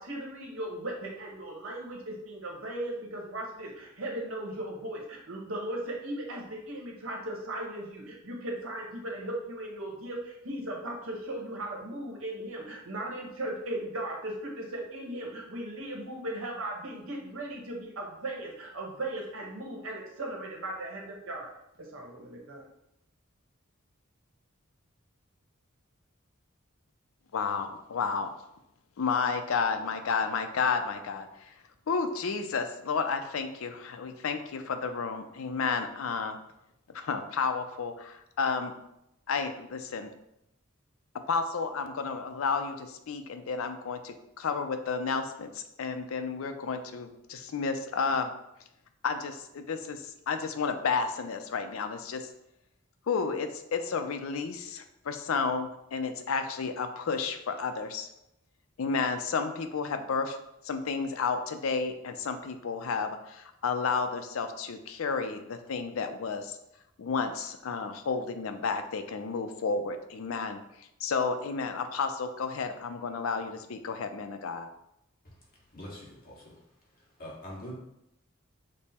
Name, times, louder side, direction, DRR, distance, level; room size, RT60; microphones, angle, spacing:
voice 1, 0.0-21.5 21.8-22.7, right 1 dB, 80° right, -1 dB, 1.0 m, -37 dB
voice 2, 27.3-28.3 29.0-31.3 31.9-36.4 36.9-38.7 39.3-40.1 41.3-48.3 49.0-52.3 53.1-58.1 58.8-60.4 60.6-66.6 67.0-70.6 71.0-74.7, left 5 dB, 75° left, 7 dB, 0.5 m, -31 dB
voice 3, 75.7-76.5 77.2-77.7, equal, 45° left, -4 dB, 1.4 m, -43 dB
5.3 x 2.1 x 4.2 m, 0.83 s
head